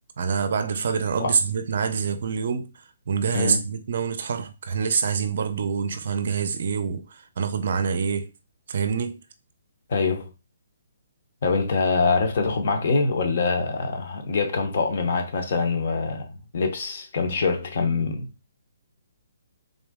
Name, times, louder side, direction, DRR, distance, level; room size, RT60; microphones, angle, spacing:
voice 1, 0.2-2.7 3.1-8.3 8.7-9.2, right 6 dB, 40° right, 0.6 m, -26 dB
voice 2, 9.9-10.3 11.4-18.3, left 4 dB, 35° left, 0.8 m, -24 dB
3.8 x 3.0 x 3.6 m
hypercardioid pair, 180°, 0 cm